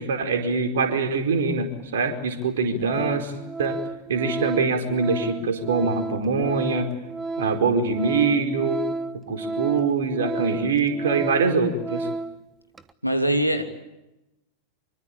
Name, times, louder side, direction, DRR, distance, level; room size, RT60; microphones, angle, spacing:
voice 1, 0.0-3.3 3.6-3.8 4.1-6.9 7.4-8.8 9.1-12.1, right 4 dB, 60° right, 6 dB, 4.7 m, -24 dB
Organ, 1.8-1.9 2.4-2.6 2.8-12.4 12.7-12.9, right 3 dB, 15° right, 1.4 m, -32 dB
voice 2, 13.0-13.6, right 1 dB, 90° left, 6 dB, 2.9 m, -22 dB
26.0 x 23.5 x 8.7 m, 0.94 s
figure-of-eight pair, 90°, 0 cm